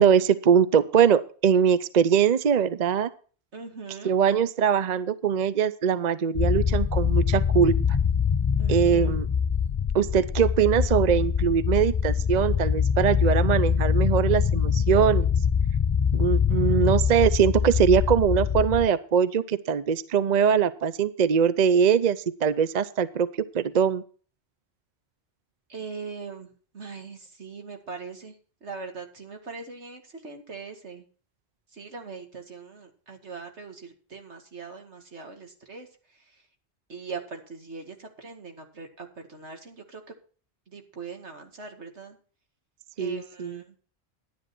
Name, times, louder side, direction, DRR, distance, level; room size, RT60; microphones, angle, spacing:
voice 1, 0.0-3.1 4.0-7.7 8.7-9.3 9.9-15.3 16.1-23.3 23.5-24.0 43.0-43.6, right 7 dB, 45° right, 15 dB, 0.7 m, -22 dB
voice 2, 3.5-4.2 8.6-9.2 25.7-26.5 26.7-28.3 28.6-31.0 31.7-35.9 36.9-40.0 40.7-42.2 43.0-43.8, right 4 dB, 85° right, 4 dB, 2.4 m, -41 dB
sound 1, 6.3-18.9, left 7 dB, 35° left, 0.5 m, -24 dB
11.0 x 10.0 x 4.3 m, 0.40 s
omnidirectional pair, 1.1 m